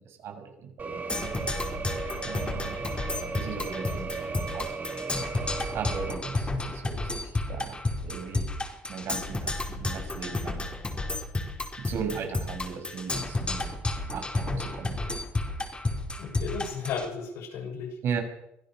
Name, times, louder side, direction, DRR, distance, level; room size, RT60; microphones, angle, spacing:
voice 1, 0.0-1.5 2.2-2.8 3.4-4.7 5.7-8.5 8.9-10.6 11.8-13.8 14.1-15.2 18.0-18.2, right 6 dB, 65° right, 5 dB, 6.6 m, -37 dB
sound 1, 0.8-6.2, right 4 dB, 40° right, 4.0 m, -36 dB
Percussion, 1.1-17.1, left 2 dB, 25° left, 4.7 m, -32 dB
voice 2, 16.2-18.0, left 5 dB, 75° left, 4 dB, 7.0 m, -34 dB
25.0 x 16.0 x 6.6 m, 0.81 s
supercardioid pair, 75°, 5 cm